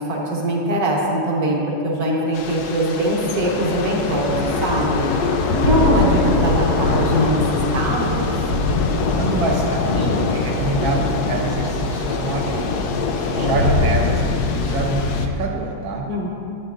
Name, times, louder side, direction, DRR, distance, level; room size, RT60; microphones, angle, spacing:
voice 1, 0.1-4.3 4.6-5.1 5.6-7.4 7.7-8.3 16.1-16.3, right 1 dB, 45° right, -3 dB, 1.6 m, -22 dB
Thunder / Rain, 2.3-15.3, left 3 dB, 90° left, 0.8 m, -22 dB
voice 2, 9.2-12.9 13.2-16.1, right 3 dB, 70° right, -1 dB, 0.9 m, -26 dB
11.5 x 8.9 x 2.5 m, 2.6 s
omnidirectional pair, 2.4 m